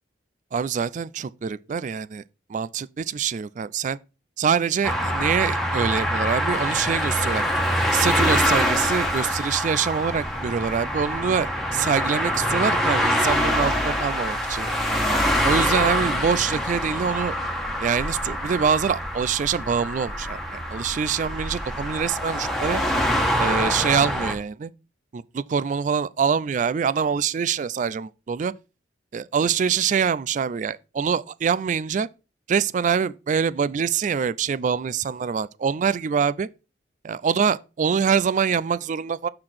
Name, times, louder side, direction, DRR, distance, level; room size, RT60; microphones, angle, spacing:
voice 1, 0.5-2.2 2.5-4.0 4.4-7.4 7.9-14.8 15.4-17.4 17.8-22.8 23.4-24.7 25.1-28.5 29.1-32.1 32.5-36.5 37.0-39.3, right 6 dB, 45° right, 0.3 m, -25 dB
sound 1, 4.8-24.3, equal, ahead, 1.4 m, -25 dB
6.7 x 3.8 x 6.1 m
head